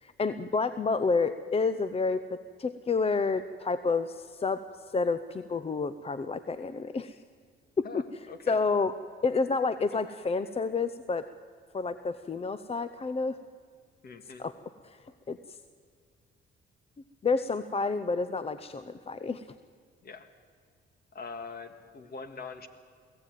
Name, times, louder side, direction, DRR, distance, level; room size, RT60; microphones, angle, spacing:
voice 1, 0.0-4.6 4.9-7.2 7.8-7.9 8.5-8.9 9.2-11.2 11.7-13.4 14.4-14.5 14.8-15.6 17.2-19.5, left 4 dB, 30° left, 13 dB, 0.7 m, -29 dB
voice 2, 7.8-8.6 14.0-14.4 20.0-20.3 21.1-22.7, left 4 dB, 50° left, 9 dB, 1.8 m, -43 dB
23.0 x 16.0 x 9.2 m, 2.1 s
cardioid pair, 90°, 20 cm